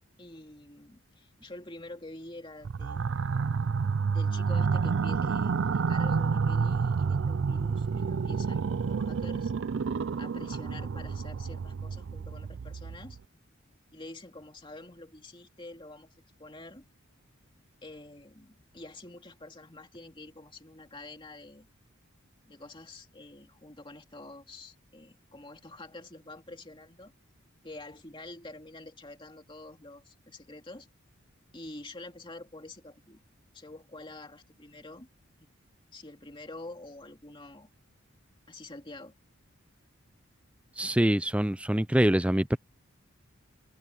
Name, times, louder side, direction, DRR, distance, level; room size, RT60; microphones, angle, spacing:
voice 1, 0.2-3.1 4.1-9.5 10.2-13.2 13.9-16.1 16.4-16.9 17.8-21.7 22.5-27.1 27.6-30.9 31.5-33.2 33.5-35.1 35.4-35.5 35.9-37.7 38.5-39.1, left 2 dB, 25° left, 2.7 m, -47 dB
sound 1, 2.6-13.2, right 5 dB, 60° right, 0.4 m, -29 dB
voice 2, 40.8-42.6, right 1 dB, 5° right, 0.5 m, -25 dB
head